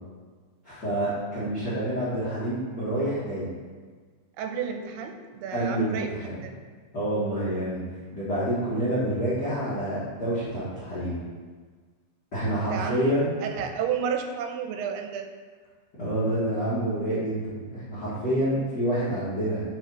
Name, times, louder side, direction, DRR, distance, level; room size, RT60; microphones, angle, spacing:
voice 1, 0.6-3.5 5.5-6.3 6.9-7.8 8.1-11.2 12.3-13.3 16.0-19.6, right 1 dB, 55° left, -12 dB, 1.1 m, -28 dB
voice 2, 4.4-6.1 6.4-6.5 12.6-13.1 13.4-15.3, right 7 dB, 85° right, 5 dB, 2.6 m, -31 dB
5.7 x 5.1 x 5.4 m, 1.5 s
omnidirectional pair, 4.6 m